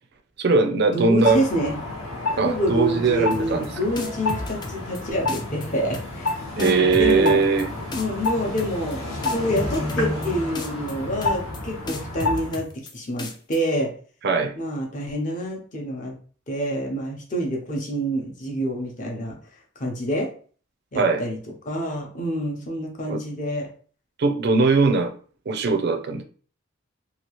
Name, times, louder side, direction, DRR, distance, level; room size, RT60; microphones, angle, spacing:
voice 1, 0.4-1.5 2.4-3.8 6.6-7.7 14.2-14.5 20.9-21.2 23.1-23.2 24.2-25.1 25.5-26.2, right 4 dB, 50° right, 6 dB, 0.4 m, -20 dB
voice 2, 0.9-1.8 2.4-7.4 8.0-13.9 14.5-16.2 16.5-19.4 19.8-20.3 20.9-21.4 21.6-23.7, equal, 35° left, 1 dB, 0.7 m, -27 dB
sound 1, 1.2-12.6, left 2 dB, 90° left, 1.1 m, -30 dB
sound 2, 3.3-3.7 4.0-5.0 5.3-5.7 5.9-6.3 6.6-7.6 7.9-8.3 8.6-8.9 9.2-10.3 10.5-10.9 11.2-11.6 11.9-12.9 13.2-13.6, left 2 dB, 20° left, 0.3 m, -33 dB
2.8 x 2.4 x 3.0 m, 0.43 s
head